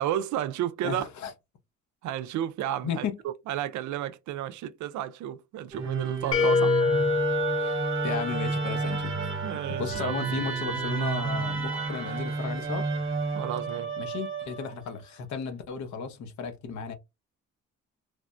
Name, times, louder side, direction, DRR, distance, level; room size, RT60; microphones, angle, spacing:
voice 1, 0.0-1.0 2.0-6.8 7.6-7.9 9.4-10.2 13.3-13.9, right 11 dB, 70° right, 0.5 m, -32 dB
voice 2, 0.8-1.3 2.8-3.2 8.0-9.1 9.8-12.9 14.0-16.9, left 6 dB, 70° left, 0.8 m, -34 dB
Musical instrument, 5.7-14.9, right 5 dB, 40° right, 0.9 m, -31 dB
sound 1, 6.3-9.2, left 5 dB, 45° left, 0.9 m, -26 dB
3.3 x 2.1 x 2.5 m
cardioid pair, 90°, 30 cm